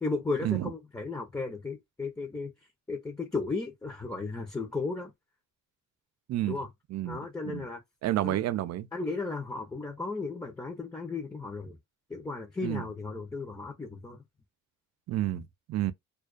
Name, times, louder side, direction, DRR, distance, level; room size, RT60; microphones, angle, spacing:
voice 1, 0.0-2.5 2.9-5.1 6.5-6.7 7.0-7.8 8.2-8.4 8.9-11.8 12.1-14.2, left 3 dB, 10° left, 0.7 m, -35 dB
voice 2, 6.3-6.6 6.9-7.7 8.0-8.9 12.6-12.9 15.1-15.9, right 13 dB, 60° right, 0.5 m, -30 dB
2.3 x 2.3 x 2.3 m
cardioid pair, 90°, 30 cm